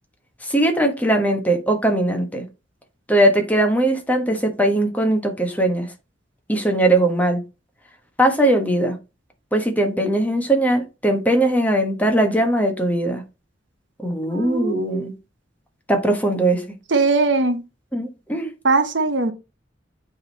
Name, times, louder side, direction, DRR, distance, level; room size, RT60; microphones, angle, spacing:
voice 1, 0.5-2.4 3.1-5.9 6.5-7.4 8.2-9.0 9.5-13.2 14.0-15.1 15.9-16.6 17.9-18.5, right 1 dB, 10° left, 1.3 m, -20 dB
voice 2, 14.3-15.1 16.9-17.6 18.6-19.3, right 3 dB, 90° right, 1.1 m, -20 dB
8.9 x 3.7 x 4.1 m
head